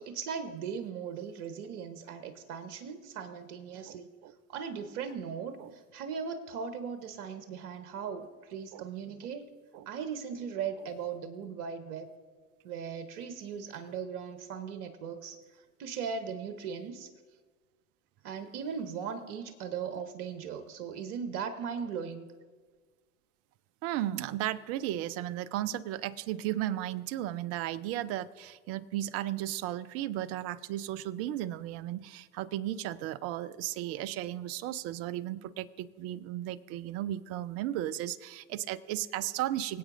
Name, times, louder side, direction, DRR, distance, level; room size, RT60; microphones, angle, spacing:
voice 1, 0.0-4.1 4.5-9.5 9.9-12.1 12.6-15.4 15.8-17.1 18.2-22.2, right 6 dB, 55° right, 10 dB, 1.0 m, -38 dB
voice 2, 3.9-4.3 5.6-5.7 8.7-8.8 9.7-9.9 23.8-39.8, right 13 dB, 35° right, 17 dB, 0.5 m, -35 dB
24.5 x 8.5 x 2.5 m, 1.5 s
figure-of-eight pair, 75°, 43 cm